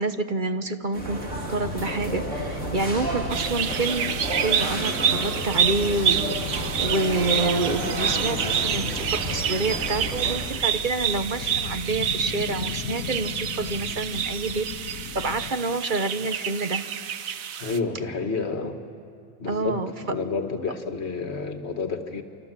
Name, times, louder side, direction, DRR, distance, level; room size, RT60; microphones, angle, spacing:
voice 1, 0.0-16.8 19.5-19.9, right 2 dB, 40° right, 9 dB, 1.1 m, -28 dB
sound 1, 0.9-10.5, right 1 dB, 65° right, 4.0 m, -31 dB
sound 2, 1.6-15.5, left 7 dB, 85° left, 1.3 m, -38 dB
sound 3, 3.3-17.8, right 9 dB, 85° right, 1.3 m, -28 dB
voice 2, 17.6-18.8 19.4-22.2, left 4 dB, 55° left, 5 dB, 2.0 m, -30 dB
28.5 x 25.5 x 7.5 m, 2.3 s
omnidirectional pair, 1.4 m